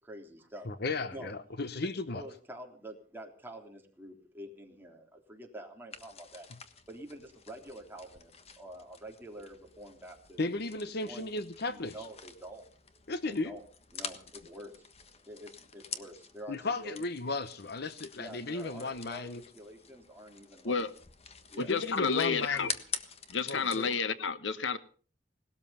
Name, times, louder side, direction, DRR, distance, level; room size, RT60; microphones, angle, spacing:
voice 1, 0.0-0.7 1.1-1.3 2.1-6.5 6.9-10.4 11.0-11.3 11.7-12.7 13.3-13.6 13.9-14.9 15.3-16.6 16.8-17.0 18.2-19.3 19.5-20.7 21.5-21.7, right 1 dB, 10° right, 1 dB, 3.4 m, -47 dB
voice 2, 0.6-2.2 10.4-11.9 13.1-13.6 16.5-19.4 21.6-22.7 23.5-23.9, left 3 dB, 60° left, 13 dB, 1.0 m, -35 dB
sound 1, 5.9-24.0, left 6 dB, 35° left, 1.4 m, -47 dB
voice 3, 21.6-22.7 23.3-24.8, left 5 dB, 90° left, 13 dB, 1.1 m, -30 dB
19.0 x 13.0 x 5.7 m, 0.42 s
head